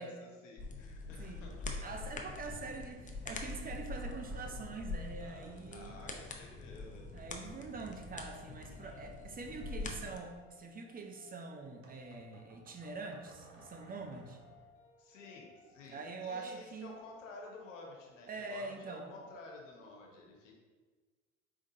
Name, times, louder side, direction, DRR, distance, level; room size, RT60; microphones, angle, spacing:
voice 1, 0.0-1.9 5.2-5.5 5.7-7.1 9.4-9.6 15.0-20.6, left 2 dB, 80° left, -1 dB, 1.0 m, -52 dB
sound 1, 0.6-10.2, left 3 dB, 20° left, 0.6 m, -44 dB
voice 2, 1.8-6.1 7.1-14.4 15.9-16.9 18.3-19.1, right 3 dB, 25° right, 4 dB, 0.6 m, -44 dB
sound 2, 3.9-5.2 6.7-6.8 7.5-8.7 9.0-10.6 11.8-14.8 16.9-17.8 18.0-18.6 19.0-20.0, right 3 dB, 85° right, 0.7 m, -62 dB
sound 3, 6.7-19.6, left 7 dB, 50° left, 1.1 m, -63 dB
4.7 x 3.7 x 2.7 m, 1.4 s
hypercardioid pair, 60°, 37 cm